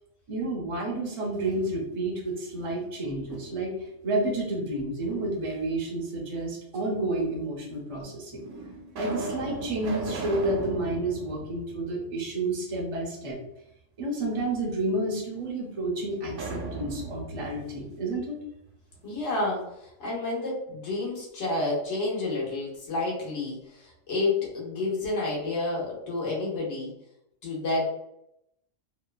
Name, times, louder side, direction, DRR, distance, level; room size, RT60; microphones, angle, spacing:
voice 1, 0.3-3.7 4.0-8.4 9.0-13.4 14.0-18.4, right 2 dB, 40° right, -2 dB, 0.5 m, -30 dB
sound 1, 1.1-2.1 2.5-3.8 5.1-5.9 6.7-6.8 7.7-7.8 8.4-12.5 12.8-12.9 16.3-19.1, right 3 dB, 75° right, 1.0 m, -38 dB
voice 2, 19.0-19.7 20.0-26.9 27.4-27.9, left 2 dB, 65° left, -4 dB, 1.2 m, -29 dB
2.9 x 2.2 x 2.2 m, 0.81 s
omnidirectional pair, 1.3 m